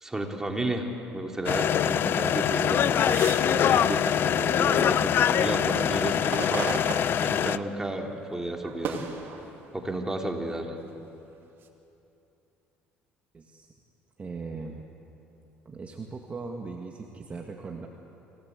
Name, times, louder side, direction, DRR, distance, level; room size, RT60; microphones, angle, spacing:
voice 1, 0.0-6.8 7.2-9.0 9.7-10.7, right 1 dB, 10° right, 2 dB, 2.9 m, -32 dB
sound 1, 1.5-7.6, left 9 dB, 50° left, 0.6 m, -24 dB
sound 2, 2.9-5.1 5.6-7.9 8.2-10.1 10.7-11.7, right 5 dB, 55° right, 2.6 m, -38 dB
voice 2, 13.3-13.7 14.2-14.8 15.7-17.9, right 4 dB, 30° right, 1 dB, 1.8 m, -39 dB
26.0 x 17.5 x 8.1 m, 2.9 s
cardioid pair, 95°, 5 cm